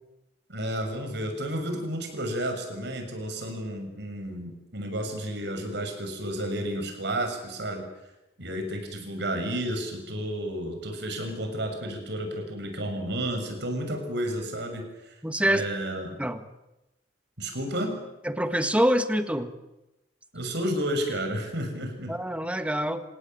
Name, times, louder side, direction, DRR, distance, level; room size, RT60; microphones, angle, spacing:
voice 1, 0.5-7.9 8.4-15.2 15.4-16.2 17.4-17.9 20.3-22.1, right 1 dB, 65° right, 4 dB, 6.8 m, -31 dB
voice 2, 15.2-15.6 16.2-16.4 18.2-19.5 22.1-23.0, equal, 5° right, 9 dB, 1.6 m, -25 dB
27.5 x 18.0 x 9.2 m, 0.97 s
head